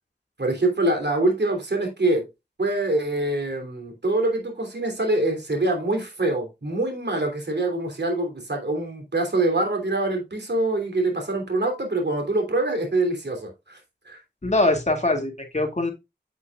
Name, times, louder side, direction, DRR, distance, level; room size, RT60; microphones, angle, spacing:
voice 1, 0.4-2.3 2.6-13.8 14.0-14.2, right 2 dB, 70° right, 3 dB, 3.1 m, -24 dB
voice 2, 14.4-15.9, left 2 dB, 40° left, 3 dB, 2.3 m, -22 dB
8.2 x 8.1 x 2.4 m, 0.22 s
wide cardioid pair, 50°, 18 cm